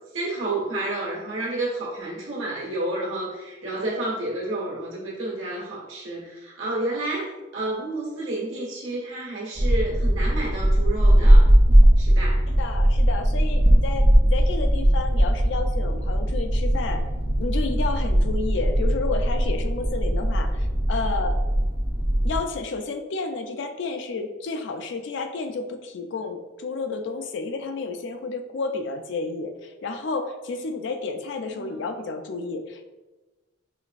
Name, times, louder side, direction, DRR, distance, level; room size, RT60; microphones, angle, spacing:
voice 1, 0.1-11.5 12.0-12.4 31.5-31.8, right 2 dB, 85° right, -4 dB, 1.3 m, -30 dB
sound 1, 9.6-22.4, equal, 25° right, 0.4 m, -19 dB
voice 2, 12.6-17.1 17.4-21.4 22.2-32.8, left 3 dB, 60° left, 6 dB, 0.3 m, -31 dB
5.0 x 2.4 x 2.4 m, 1.1 s
head